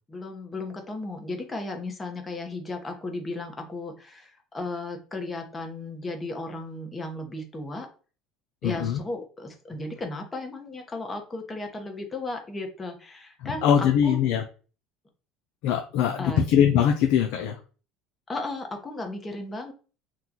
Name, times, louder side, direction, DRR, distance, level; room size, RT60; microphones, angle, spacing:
voice 1, 0.1-7.9 8.6-14.2 16.2-16.5 18.3-19.7, left 2 dB, 20° left, 3 dB, 0.9 m, -35 dB
voice 2, 8.6-9.0 13.4-14.4 15.6-17.6, left 9 dB, 70° left, 4 dB, 0.4 m, -22 dB
3.0 x 2.2 x 3.8 m, 0.37 s
supercardioid pair, 95°, 0 cm